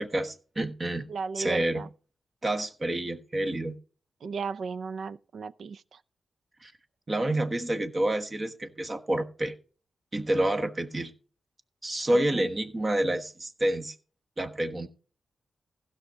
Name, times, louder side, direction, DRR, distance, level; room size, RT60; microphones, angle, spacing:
voice 1, 0.0-1.1 1.3-1.8 2.4-3.8 6.6-6.7 7.1-9.5 10.1-11.1 11.8-13.9 14.4-14.9, right 1 dB, 30° right, 1.2 m, -28 dB
voice 2, 1.1-1.9 4.2-6.0 12.1-12.5, right 5 dB, 70° right, 0.6 m, -35 dB
16.0 x 5.8 x 5.2 m
wide cardioid pair, 110°, 0 cm